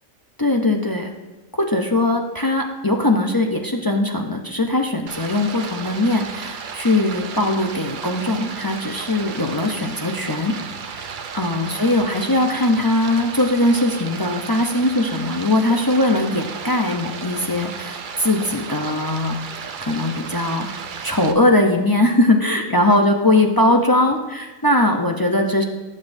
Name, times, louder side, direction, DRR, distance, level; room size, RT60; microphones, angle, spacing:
voice 1, 0.4-1.1 1.5-10.6 10.9-11.1 11.3-19.4 19.8-20.7 21.0-25.6, left 1 dB, 25° left, 2 dB, 0.5 m, -20 dB
Stream, 5.1-21.3, right 6 dB, 50° right, 0.6 m, -34 dB
19.0 x 7.6 x 2.6 m, 1.2 s
omnidirectional pair, 1.4 m